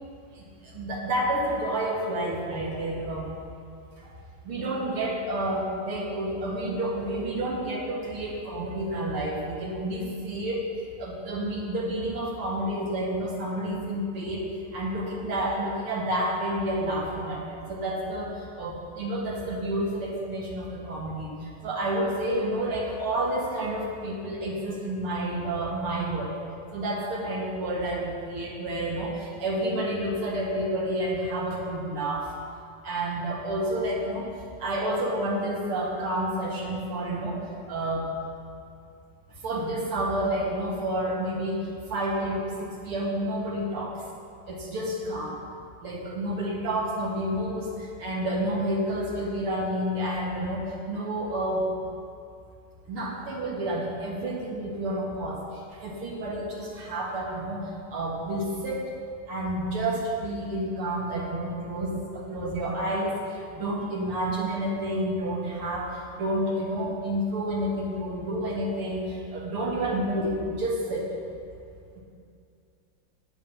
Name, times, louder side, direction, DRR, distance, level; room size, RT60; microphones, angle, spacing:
voice 1, 0.3-3.3 4.0-4.1 4.4-10.7 11.0-26.4 26.7-32.3 32.8-34.3 34.6-37.4 37.7-38.1 39.3-44.0 44.5-45.4 45.8-51.7 52.9-57.6 57.9-59.0 59.3-71.2 72.0-72.1, right 1 dB, 85° right, -3 dB, 2.8 m, -30 dB
9.8 x 9.6 x 5.7 m, 2.5 s
omnidirectional pair, 2.3 m